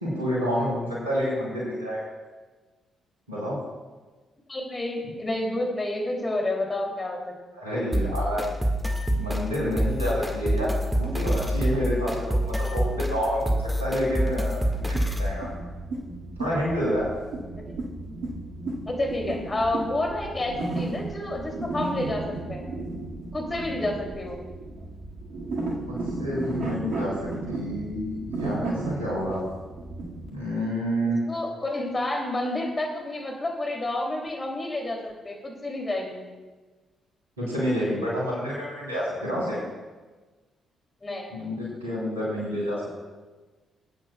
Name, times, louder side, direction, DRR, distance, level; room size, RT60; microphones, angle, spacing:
voice 1, 0.0-2.0 3.3-3.6 7.6-8.5 9.1-15.5 16.4-17.1 25.9-29.4 30.3-31.2 37.4-39.6 41.3-43.0, equal, 90° right, -6 dB, 3.0 m, -29 dB
voice 2, 4.5-7.3 17.5-18.2 18.9-22.7 23.3-24.4 31.3-36.3 41.0-41.3, left 1 dB, 25° left, 0 dB, 2.6 m, -30 dB
sound 1, 7.9-15.3, equal, 5° right, 1.6 m, -27 dB
sound 2, 14.8-30.3, right 2 dB, 60° right, 1.8 m, -34 dB
21.5 x 8.8 x 2.2 m, 1.3 s
figure-of-eight pair, 40°, 0 cm